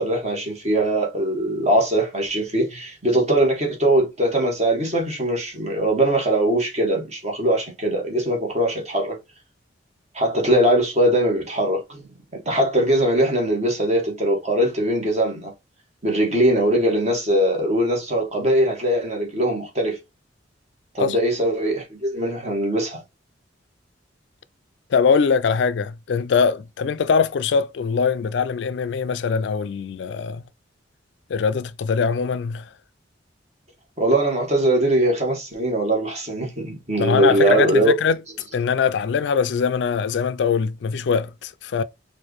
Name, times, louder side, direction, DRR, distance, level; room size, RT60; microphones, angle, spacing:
voice 1, 0.0-9.2 10.1-12.0 12.3-15.5 16.0-20.0 20.9-23.0 34.0-37.9, right 1 dB, 40° right, 1.5 m, -21 dB
voice 2, 24.9-30.4 31.3-32.7 37.0-38.2 38.5-41.8, left 6 dB, 65° left, 0.4 m, -22 dB
4.5 x 2.6 x 2.9 m
head